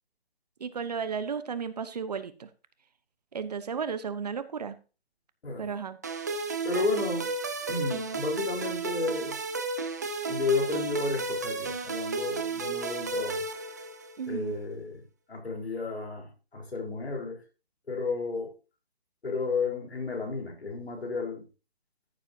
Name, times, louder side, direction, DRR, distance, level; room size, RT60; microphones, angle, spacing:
voice 1, 0.6-2.5 3.3-4.8 5.6-6.0 14.2-14.5, right 6 dB, 40° right, 0.9 m, -34 dB
sound 1, 6.0-14.3, right 3 dB, 15° right, 0.6 m, -33 dB
voice 2, 6.6-7.3 7.7-9.4 10.3-13.4 14.3-15.0 15.3-17.4 17.9-18.5 19.2-21.4, left 4 dB, 85° left, 4.2 m, -32 dB
14.0 x 7.5 x 2.8 m
hypercardioid pair, 160°, 31 cm